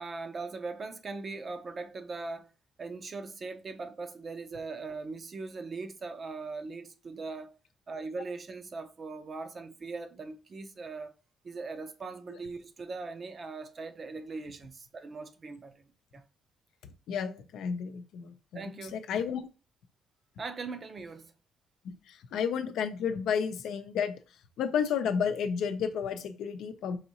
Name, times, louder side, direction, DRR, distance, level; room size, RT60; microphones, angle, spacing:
voice 1, 0.0-2.5 2.8-7.6 7.9-11.1 11.4-15.8 16.1-16.2 18.5-19.0 20.4-21.3, right 3 dB, 40° right, 0.6 m, -40 dB
voice 2, 17.1-19.5 21.8-24.1 24.6-27.0, left 7 dB, 80° left, 0.5 m, -32 dB
4.8 x 2.6 x 2.8 m
cardioid pair, 90°, 0 cm